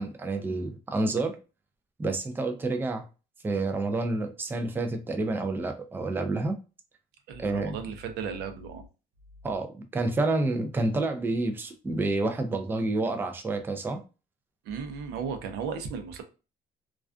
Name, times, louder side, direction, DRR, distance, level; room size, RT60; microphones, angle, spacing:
voice 1, 0.0-1.4 2.0-3.1 3.4-6.6 7.4-7.7 9.4-14.0, right 2 dB, 10° right, 0.4 m, -29 dB
voice 2, 7.3-8.9 14.6-16.2, right 6 dB, 85° right, 0.5 m, -35 dB
2.3 x 2.3 x 2.4 m
cardioid pair, 110°, 17 cm